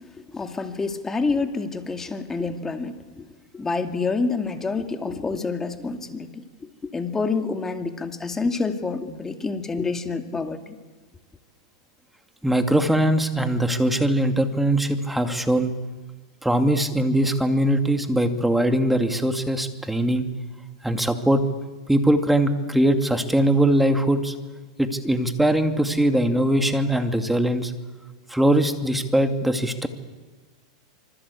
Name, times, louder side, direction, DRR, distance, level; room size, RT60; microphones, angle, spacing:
voice 1, 0.3-3.0 3.5-6.4 6.9-10.7, left 4 dB, 15° left, 6 dB, 2.3 m, -27 dB
voice 2, 12.4-15.7 16.4-20.3 20.8-21.4 21.9-24.3 24.8-27.7 28.3-29.9, right 1 dB, 5° right, 6 dB, 2.4 m, -21 dB
26.0 x 24.5 x 8.5 m, 1.4 s
hypercardioid pair, 115°, 3 cm